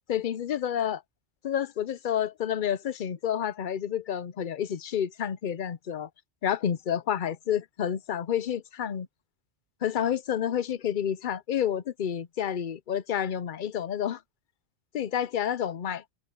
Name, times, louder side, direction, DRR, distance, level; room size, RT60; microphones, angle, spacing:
voice 1, 0.1-1.0 1.4-6.1 6.4-9.1 9.8-14.2 14.9-16.0, left 9 dB, 55° left, 0.7 m, -29 dB
open air
omnidirectional pair, 1.2 m